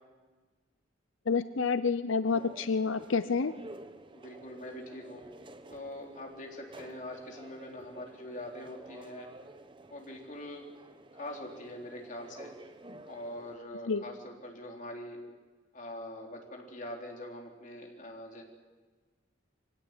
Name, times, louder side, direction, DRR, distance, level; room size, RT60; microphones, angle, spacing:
voice 1, 1.3-3.5 13.9-14.0, left 5 dB, 90° left, 13 dB, 0.6 m, -28 dB
sound 1, 2.2-13.6, right 2 dB, 25° right, 1.1 m, -51 dB
voice 2, 4.1-5.3 5.7-9.3 9.9-10.6 11.2-12.5 13.1-15.2 15.7-18.4, left 1 dB, 40° left, 1 dB, 3.9 m, -43 dB
24.0 x 17.0 x 9.5 m, 1.4 s
head